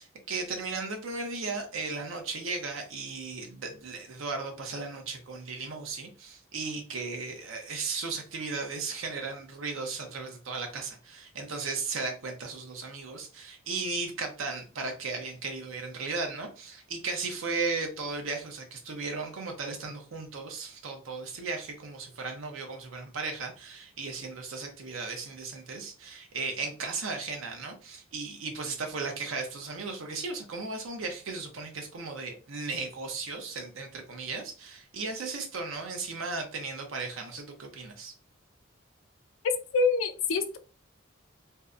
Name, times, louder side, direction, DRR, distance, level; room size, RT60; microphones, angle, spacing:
voice 1, 0.0-38.1, right 4 dB, 75° right, 3 dB, 0.6 m, -36 dB
voice 2, 39.7-40.6, left 4 dB, 75° left, 9 dB, 0.4 m, -25 dB
2.6 x 2.1 x 2.4 m, 0.36 s
head